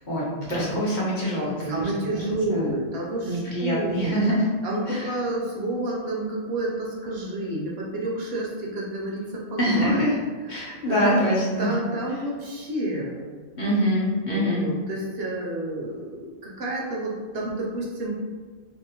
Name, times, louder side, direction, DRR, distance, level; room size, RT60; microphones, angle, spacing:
voice 1, 0.1-2.2 2.5-2.6 3.2-4.5 4.9-5.1 9.6-10.2 10.5-11.8 13.6-14.7, equal, 50° left, -6 dB, 0.8 m, -24 dB
voice 2, 1.7-4.3 4.6-10.0 10.5-11.2 11.6-13.4 14.3-18.1, right 1 dB, 70° right, -3 dB, 0.8 m, -30 dB
2.7 x 2.0 x 2.8 m, 1.4 s
omnidirectional pair, 1.1 m